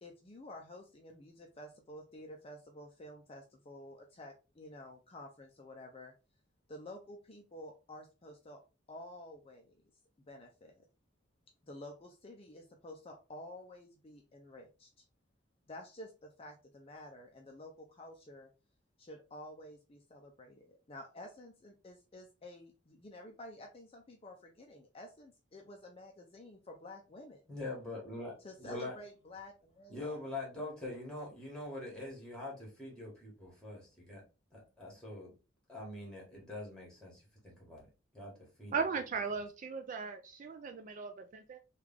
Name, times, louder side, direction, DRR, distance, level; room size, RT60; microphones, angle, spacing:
voice 1, 0.0-6.1 6.7-8.6 8.9-9.8 10.3-10.9 11.6-15.0 15.7-18.5 19.0-27.4 28.4-30.2, left 1 dB, 30° left, 3 dB, 0.4 m, -51 dB
voice 2, 27.5-29.0 29.9-34.2 34.5-35.3 35.7-37.9 38.1-38.3 38.6-38.8, left 2 dB, 5° left, -2 dB, 1.5 m, -44 dB
voice 3, 38.7-41.6, right 5 dB, 40° right, 7 dB, 0.3 m, -37 dB
3.3 x 2.4 x 3.5 m, 0.32 s
head